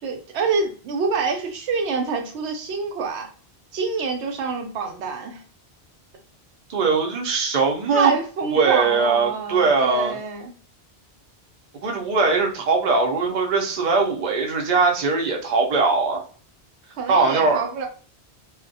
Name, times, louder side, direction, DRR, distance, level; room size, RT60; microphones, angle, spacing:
voice 1, 0.0-3.3 3.7-5.4 7.9-10.5 17.0-17.9, right 5 dB, 85° right, 4 dB, 0.9 m, -26 dB
voice 2, 6.7-8.1 8.4-10.2 11.8-16.2 17.1-17.6, right 4 dB, 50° right, 1 dB, 0.6 m, -20 dB
2.3 x 2.1 x 2.6 m, 0.41 s
omnidirectional pair, 1.1 m